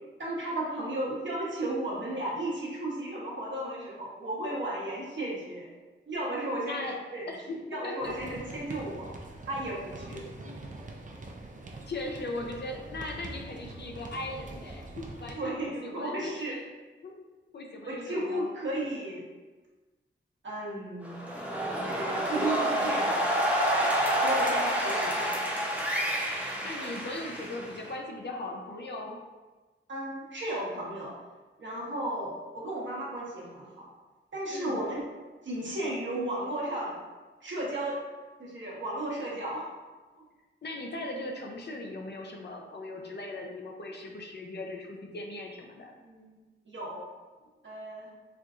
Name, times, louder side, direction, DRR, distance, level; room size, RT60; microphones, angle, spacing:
voice 1, 0.2-5.7 6.1-7.3 7.7-9.1 9.5-10.3 15.4-16.6 17.9-19.2 20.4-21.2 21.8-23.3 24.2-25.3 29.9-31.1 31.6-33.9 34.3-35.0 35.4-37.0 37.4-38.0 38.4-39.7 40.2-40.3 46.0-46.4 46.7-47.1 47.6-48.1, right 1 dB, 65° right, -5 dB, 1.0 m, -34 dB
voice 2, 6.6-8.1 10.4-10.6 11.9-16.6 17.0-17.1 17.5-18.5 26.6-29.2 34.5-34.9 40.6-45.9, left 2 dB, 55° left, 0 dB, 0.5 m, -39 dB
sound 1, 8.0-15.3, right 2 dB, 40° right, 0.4 m, -44 dB
sound 2, 21.0-27.9, equal, 5° right, 0.7 m, -28 dB
4.4 x 2.5 x 2.4 m, 1.3 s
wide cardioid pair, 115°, 21 cm